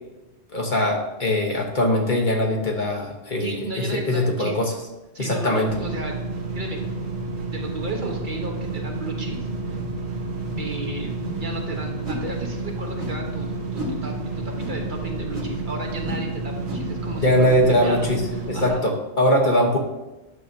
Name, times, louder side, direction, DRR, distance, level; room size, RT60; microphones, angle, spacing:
voice 1, 0.5-4.7 5.2-5.7 17.2-18.2 18.5-19.8, left 1 dB, 45° left, 0 dB, 1.1 m, -21 dB
voice 2, 3.3-4.6 5.1-6.2 6.5-6.8 7.5-9.5 10.6-18.1 18.5-18.8, right 2 dB, 50° right, 0 dB, 1.1 m, -34 dB
sound 1, 5.7-18.7, right 3 dB, 75° right, 1.2 m, -30 dB
Whoosh Swipe Fight Sounds Sword Air, 9.7-9.9 10.4-10.7 11.2-11.4 12.0-12.3 13.0-13.2 13.7-14.0 14.5-14.8 15.3-15.6 16.0-16.3 16.6-16.9 17.5-17.6, left 1 dB, 30° right, 1.4 m, -34 dB
9.5 x 6.6 x 2.6 m, 1.1 s
omnidirectional pair, 1.1 m